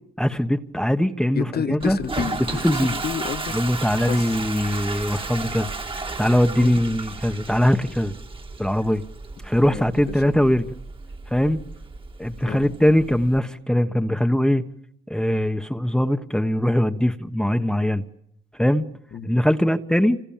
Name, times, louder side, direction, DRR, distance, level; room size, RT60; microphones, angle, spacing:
voice 1, 0.2-2.0 2.6-2.9 3.5-5.7 6.0-8.1 8.6-9.0 9.4-10.6 11.3-11.6 12.2-14.6 15.1-18.0 18.6-18.9 19.2-20.2, equal, 5° left, 7 dB, 1.2 m, -21 dB
voice 2, 1.3-3.6 4.1-4.4 6.6-6.8 9.6-10.3 12.5-12.6 19.1-19.3, left 7 dB, 55° left, 10 dB, 1.8 m, -30 dB
Toilet flush, 1.8-13.4, right 3 dB, 25° right, 1.9 m, -34 dB
28.0 x 26.5 x 7.4 m, 0.74 s
cardioid pair, 90°, 20 cm